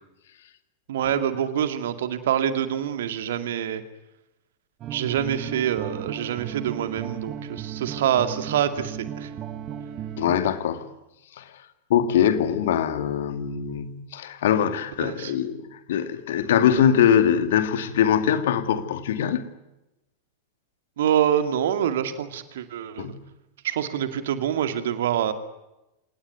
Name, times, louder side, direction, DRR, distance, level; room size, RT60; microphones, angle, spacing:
voice 1, 0.9-3.8 4.9-9.3 15.0-15.3 21.0-23.1 23.6-25.3, right 9 dB, 60° right, 2.3 m, -26 dB
sound 1, 4.8-10.4, right 9 dB, 35° right, 1.6 m, -35 dB
voice 2, 10.2-10.9 11.4-11.5 11.9-19.4 23.0-23.2, left 9 dB, 60° left, 2.2 m, -22 dB
27.0 x 18.5 x 9.6 m
figure-of-eight pair, 90°, 0 cm